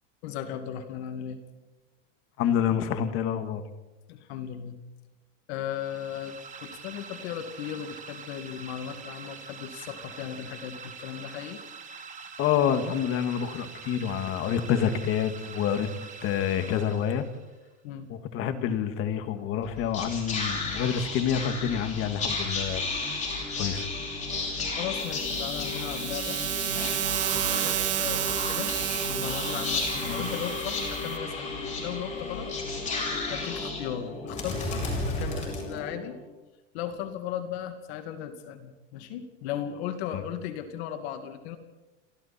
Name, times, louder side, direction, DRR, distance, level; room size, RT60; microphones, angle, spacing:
voice 1, 0.2-1.4 4.1-4.8 5.5-11.6 17.8-18.1 24.8-26.4 27.3-28.7 29.0-32.5 33.3-36.2 36.7-41.6, left 10 dB, 55° left, 8 dB, 2.4 m, -36 dB
voice 2, 2.4-3.6 12.4-15.9 16.2-17.2 18.1-22.8 23.6-23.9 30.0-30.2 40.1-40.2, left 8 dB, 35° left, 9 dB, 1.9 m, -27 dB
sound 1, 5.7-17.5, right 5 dB, 20° right, 1.8 m, -44 dB
Whispering, 19.6-36.2, left 3 dB, 20° left, 5.6 m, -33 dB
sound 2, 25.0-31.2, right 14 dB, 40° right, 1.7 m, -31 dB
29.5 x 24.0 x 4.3 m, 1.1 s
supercardioid pair, 155°, 37 cm